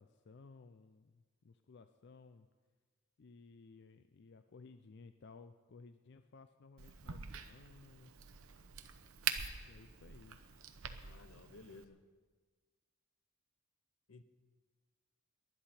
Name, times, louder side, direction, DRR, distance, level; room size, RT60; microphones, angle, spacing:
voice 1, 0.0-2.5 3.2-8.1 9.7-10.4, left 4 dB, 55° left, 0.4 m, -58 dB
Crack, 6.8-11.8, right 7 dB, 90° right, 0.9 m, -44 dB
voice 2, 11.0-12.0 14.1-14.2, left 3 dB, 85° left, 0.8 m, -56 dB
19.5 x 11.5 x 4.3 m
head